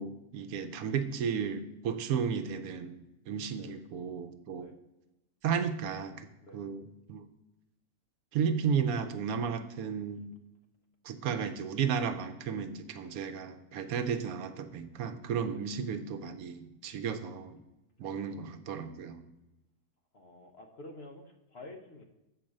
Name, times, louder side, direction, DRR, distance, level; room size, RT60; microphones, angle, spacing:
voice 1, 0.0-4.7 5.4-6.3 6.5-7.2 8.3-10.3 11.0-17.6 18.0-19.2, right 6 dB, 75° right, 9 dB, 1.0 m, -34 dB
voice 2, 18.0-18.5 20.1-22.0, left 2 dB, 50° left, 3 dB, 0.9 m, -50 dB
7.4 x 4.7 x 6.4 m, 0.95 s
omnidirectional pair, 1.6 m